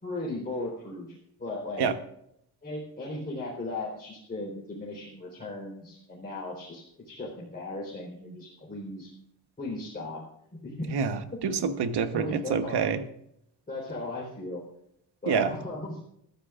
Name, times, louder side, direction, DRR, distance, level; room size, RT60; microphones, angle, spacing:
voice 1, 0.0-1.9 2.6-9.1 9.6-10.2 10.5-10.9 11.5-11.6 12.1-12.8 13.7-14.6 15.2-16.0, left 2 dB, 25° left, -5 dB, 4.1 m, -37 dB
voice 2, 10.9-13.0 15.3-15.5, right 6 dB, 80° right, 9 dB, 1.3 m, -27 dB
23.5 x 14.5 x 2.5 m, 0.74 s
wide cardioid pair, 155°, 39 cm